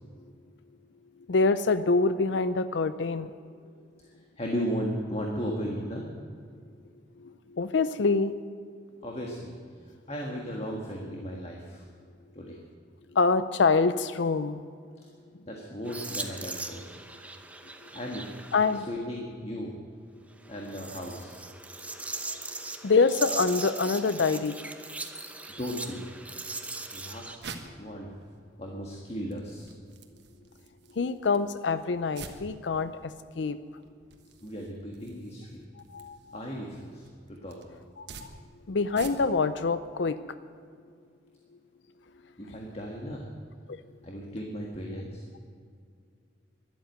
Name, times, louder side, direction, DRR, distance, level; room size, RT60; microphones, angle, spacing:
voice 1, 1.3-3.3 7.2-7.3 7.6-8.4 13.1-14.6 18.5-18.9 22.8-24.6 31.0-33.6 35.9-36.4 38.0-38.1 38.7-40.2 43.7-43.8, left 4 dB, 70° left, 13 dB, 0.5 m, -25 dB
voice 2, 3.5-6.0 9.0-9.5 9.8-11.9 12.3-12.6 15.5-16.9 17.9-19.7 20.5-21.4 25.6-26.2 26.9-27.5 27.8-28.1 28.6-29.7 34.4-35.6 36.3-37.6 42.4-43.3 44.0-45.2, equal, 35° left, 0 dB, 1.6 m, -36 dB
sound 1, 15.8-18.9 20.4-27.4, right 3 dB, 5° right, 0.8 m, -39 dB
sound 2, 27.4-39.5, right 4 dB, 60° right, 1.4 m, -49 dB
12.5 x 11.5 x 9.0 m, 2.3 s
head